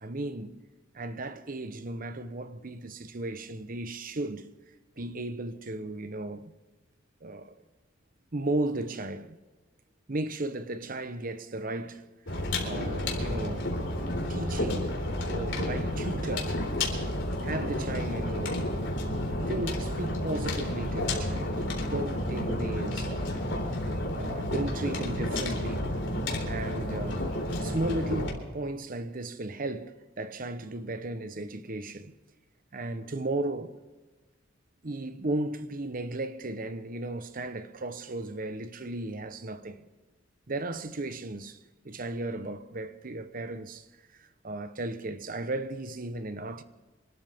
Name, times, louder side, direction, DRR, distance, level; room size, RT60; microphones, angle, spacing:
voice 1, 0.0-0.5 0.9-4.5 5.0-6.5 7.2-7.6 8.3-9.4 10.1-12.0 12.3-13.7 14.3-15.0 15.3-16.6 17.4-18.7 19.5-23.3 24.2-25.8 26.4-27.3 27.6-32.1 32.7-33.8 34.8-39.8 40.5-41.6 41.8-43.9 44.1-46.6, right 2 dB, 45° right, 1.0 m, -35 dB
sound 1, 12.3-28.3, left 1 dB, 65° left, 3.8 m, -31 dB
26.5 x 13.0 x 3.6 m
head